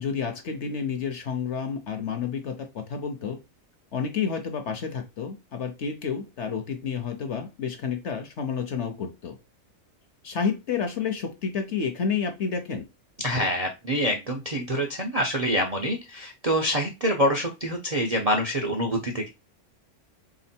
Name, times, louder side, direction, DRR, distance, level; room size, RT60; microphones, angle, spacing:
voice 1, 0.0-3.4 3.9-9.4 10.2-12.8, left 6 dB, 55° left, 6 dB, 0.9 m, -30 dB
voice 2, 13.2-19.3, equal, 40° right, 1 dB, 0.5 m, -26 dB
3.7 x 3.0 x 4.2 m, 0.26 s
omnidirectional pair, 1.6 m